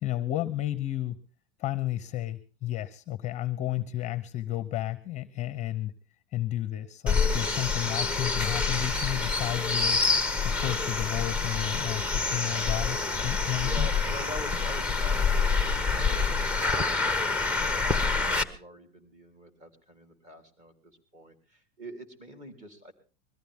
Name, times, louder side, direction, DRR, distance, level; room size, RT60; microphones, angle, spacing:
voice 1, 0.0-1.2 1.6-5.9 6.3-10.0 10.4-13.9, left 14 dB, 25° left, 13 dB, 0.8 m, -32 dB
sound 1, 7.1-18.4, left 4 dB, 5° right, 0.9 m, -27 dB
voice 2, 13.6-22.9, equal, 25° right, 6 dB, 3.7 m, -45 dB
22.0 x 14.5 x 3.6 m, 0.35 s
supercardioid pair, 155°, 30 cm